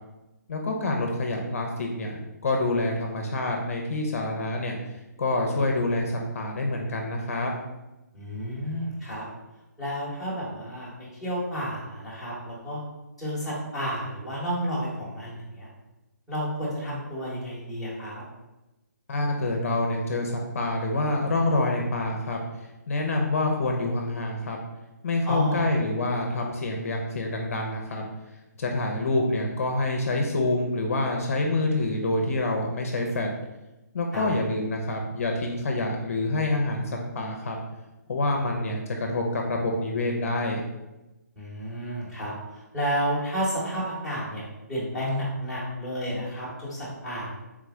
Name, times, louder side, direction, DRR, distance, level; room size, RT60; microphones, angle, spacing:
voice 1, 0.5-4.8 5.2-7.5 19.1-22.4 22.9-24.6 25.0-28.0 28.6-33.3 33.9-37.6 38.1-40.6, left 2 dB, 50° left, 1 dB, 0.6 m, -27 dB
voice 2, 8.1-9.2 9.8-12.8 13.2-15.7 16.3-18.2 25.2-25.7 34.1-34.3 41.4-47.3, equal, ahead, -12 dB, 1.1 m, -31 dB
3.5 x 3.1 x 3.5 m, 1.0 s
hypercardioid pair, 165°, 10 cm